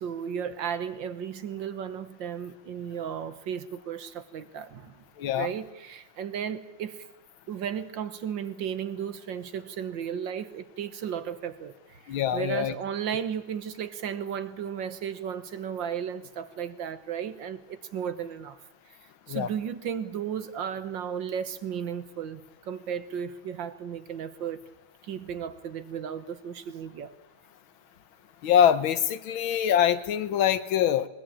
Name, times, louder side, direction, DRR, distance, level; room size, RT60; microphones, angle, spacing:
voice 1, 0.0-5.0 5.3-7.0 7.5-18.6 19.3-24.6 25.0-27.1, right 8 dB, 70° right, 12 dB, 1.9 m, -34 dB
voice 2, 5.2-5.5 12.1-12.8 19.3-19.5 28.4-31.1, left 9 dB, 90° left, 13 dB, 1.8 m, -24 dB
21.0 x 19.5 x 8.8 m, 0.96 s
omnidirectional pair, 2.1 m